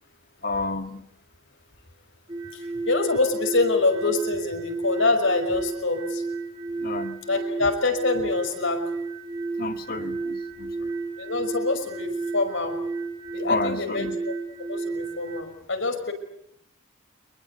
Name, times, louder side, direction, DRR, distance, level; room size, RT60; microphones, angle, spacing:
voice 1, 0.4-1.0 6.8-7.2 9.6-10.9 13.4-14.2, left 3 dB, 45° left, 8 dB, 1.9 m, -30 dB
sound 1, 2.3-15.4, right 3 dB, 20° right, 3.3 m, -32 dB
voice 2, 2.5-6.2 7.3-8.8 11.2-12.8 13.3-14.3 14.7-16.1, left 3 dB, 60° left, 6 dB, 5.7 m, -25 dB
26.5 x 22.0 x 8.3 m, 0.75 s
head